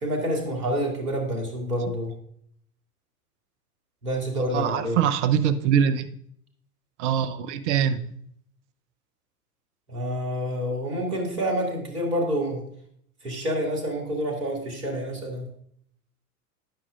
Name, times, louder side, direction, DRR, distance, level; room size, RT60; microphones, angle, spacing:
voice 1, 0.0-2.1 4.0-5.0 9.9-12.6 13.2-15.5, equal, 75° right, 2.6 m, -28 dB
voice 2, 4.5-6.1 7.0-8.0, right 8 dB, 50° right, 0.8 m, -23 dB
18.0 x 6.1 x 2.5 m
figure-of-eight pair, 90°, 45 cm